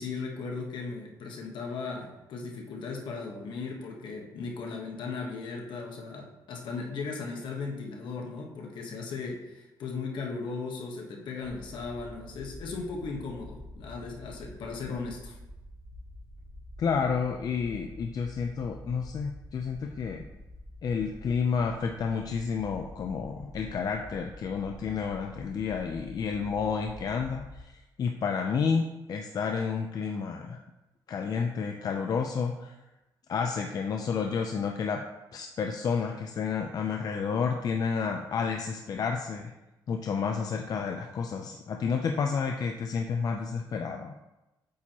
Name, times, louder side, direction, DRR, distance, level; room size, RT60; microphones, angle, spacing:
voice 1, 0.0-15.4, left 4 dB, 75° left, 0 dB, 1.2 m, -37 dB
sound 1, 11.4-27.6, left 1 dB, 10° right, 2.2 m, -47 dB
voice 2, 16.8-20.2 20.8-30.6 31.1-32.8 33.3-35.0 35.3-39.5 39.9-44.1, left 5 dB, 50° left, 3 dB, 0.5 m, -30 dB
8.3 x 4.4 x 3.0 m, 1.0 s
cardioid pair, 115°, 8 cm